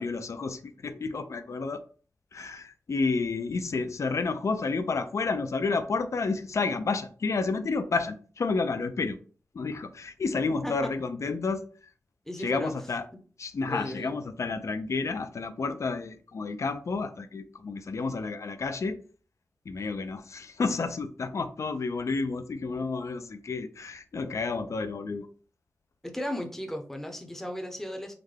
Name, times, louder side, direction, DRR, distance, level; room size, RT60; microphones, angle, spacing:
voice 1, 0.0-1.9 2.3-9.2 9.5-11.6 12.4-13.0 13.4-19.0 19.7-25.3, left 4 dB, 60° left, 0.4 m, -30 dB
voice 2, 12.3-12.7 13.7-14.2 26.0-28.1, equal, 5° left, 0.6 m, -35 dB
3.6 x 2.2 x 3.2 m
wide cardioid pair, 100°, 6 cm